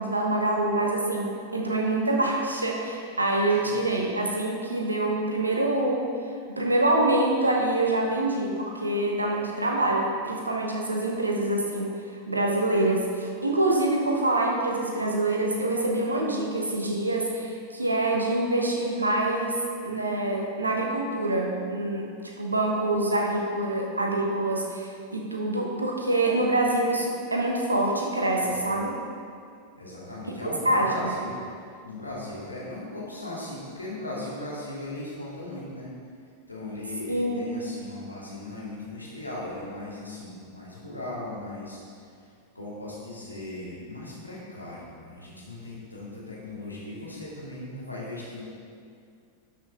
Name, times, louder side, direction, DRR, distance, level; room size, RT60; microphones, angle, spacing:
voice 1, 0.0-6.1 6.5-28.9 30.4-31.1 37.1-37.4, right 2 dB, 80° right, 0 dB, 1.2 m, -26 dB
voice 2, 3.6-3.9 28.3-28.7 29.8-35.9 36.5-48.5, left 2 dB, 85° left, -6 dB, 2.3 m, -38 dB
12.0 x 6.0 x 3.7 m, 2.3 s
figure-of-eight pair, 90°, 0 cm